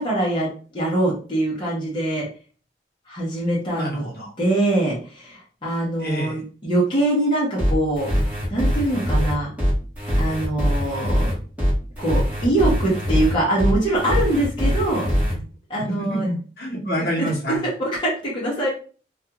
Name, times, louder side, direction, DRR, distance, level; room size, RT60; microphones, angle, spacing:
voice 1, 0.0-2.3 3.1-4.1 4.4-8.1 8.5-9.5 10.2-11.3 12.0-15.1 15.7-16.3 17.6-18.7, right 1 dB, 25° left, -5 dB, 0.7 m, -23 dB
voice 2, 3.7-4.3 6.0-6.4 15.2-15.4 15.7-17.6, equal, 55° left, -2 dB, 0.9 m, -27 dB
sound 1, 7.6-15.3, equal, 10° right, 1.0 m, -22 dB
2.4 x 2.3 x 2.8 m, 0.39 s
head